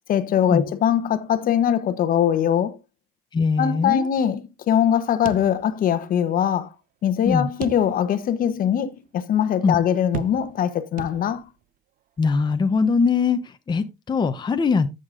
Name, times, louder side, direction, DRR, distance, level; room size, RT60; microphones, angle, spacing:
voice 1, 0.1-2.8 3.6-6.7 7.0-11.5, left 9 dB, 55° left, 0.9 m, -22 dB
voice 2, 3.3-4.1 7.2-7.5 9.6-9.9 12.2-14.9, left 5 dB, 25° left, 0.7 m, -21 dB
sound 1, 5.2-6.1 6.4-6.5 7.6-8.3 8.8-8.9 10.1-10.7 11.0-11.6, right 11 dB, 55° right, 0.5 m, -35 dB
14.0 x 6.6 x 2.5 m
cardioid pair, 110°, 17 cm